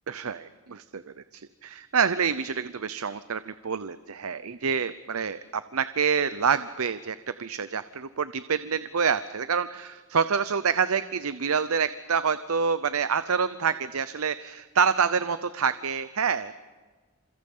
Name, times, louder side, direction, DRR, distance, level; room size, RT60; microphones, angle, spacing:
voice 1, 0.1-16.5, right 6 dB, 90° right, 13 dB, 0.7 m, -27 dB
29.0 x 27.0 x 5.6 m, 1.4 s
head